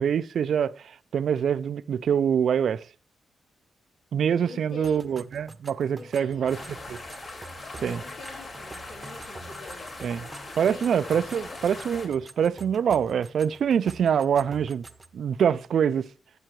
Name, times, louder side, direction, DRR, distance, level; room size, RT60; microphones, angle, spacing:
voice 1, 0.0-2.9 4.1-6.6 7.8-8.0 10.0-10.3 10.6-14.8 15.1-16.1, right 8 dB, 70° right, 0.4 m, -25 dB
voice 2, 4.4-5.0 6.0-6.8 7.8-11.6, left 3 dB, 80° left, 3.5 m, -46 dB
sound 1, 4.8-15.2, right 3 dB, 35° right, 0.8 m, -47 dB
sound 2, 6.5-12.1, left 2 dB, 50° left, 4.1 m, -40 dB
14.5 x 7.6 x 3.1 m
supercardioid pair, 50°, 0 cm